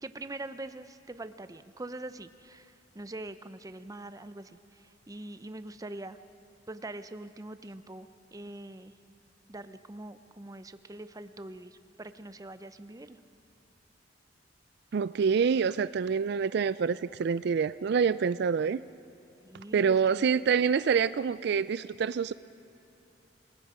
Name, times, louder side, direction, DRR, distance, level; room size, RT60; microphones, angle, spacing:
voice 1, 0.0-6.2 6.7-8.9 9.5-13.2 19.4-20.5, right 2 dB, 20° right, 11 dB, 0.7 m, -43 dB
voice 2, 14.9-18.8 19.7-22.3, right 6 dB, 65° right, 16 dB, 0.4 m, -26 dB
27.0 x 20.0 x 5.0 m, 2.9 s
head